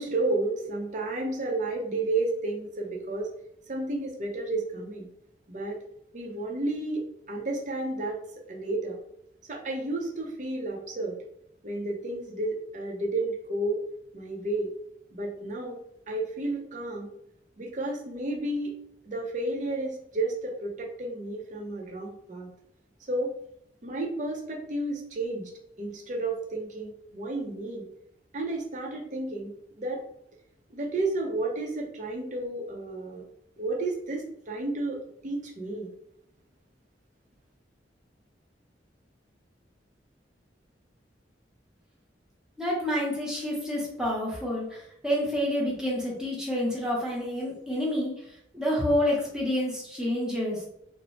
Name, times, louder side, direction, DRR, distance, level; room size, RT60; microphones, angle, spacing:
voice 1, 0.0-3.3 3.7-5.1 5.5-5.8 6.1-9.0 9.5-11.2 11.6-13.8 14.1-14.7 15.1-15.8 16.1-17.1 17.6-18.8 19.0-22.5 23.1-23.3 23.8-25.5 25.8-27.9 28.3-30.0 30.7-33.3 33.6-35.9, right 2 dB, 45° right, 0 dB, 0.6 m, -32 dB
voice 2, 42.6-48.1 48.5-50.6, left 1 dB, 5° right, -4 dB, 0.8 m, -28 dB
2.7 x 2.0 x 3.0 m, 0.74 s
head